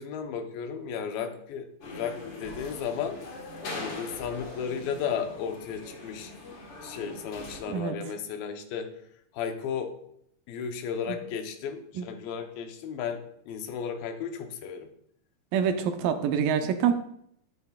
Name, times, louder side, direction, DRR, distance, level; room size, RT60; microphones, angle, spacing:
voice 1, 0.0-3.2 3.7-6.3 6.8-8.9 9.3-9.9 10.5-14.9, left 7 dB, 85° left, 6 dB, 2.8 m, -34 dB
sound 1, 1.8-7.6, left 2 dB, 45° left, 2.3 m, -41 dB
voice 2, 15.5-16.9, right 8 dB, 80° right, 7 dB, 2.5 m, -26 dB
11.0 x 11.0 x 2.4 m, 0.71 s
omnidirectional pair, 4.1 m